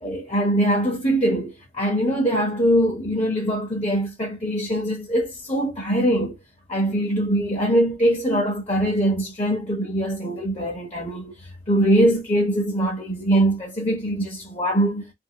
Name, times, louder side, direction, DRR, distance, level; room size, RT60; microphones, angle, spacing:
voice 1, 0.0-6.4 6.7-11.3 11.7-15.0, right 1 dB, 30° left, 1.0 m, -22 dB
2.7 x 2.7 x 2.9 m
head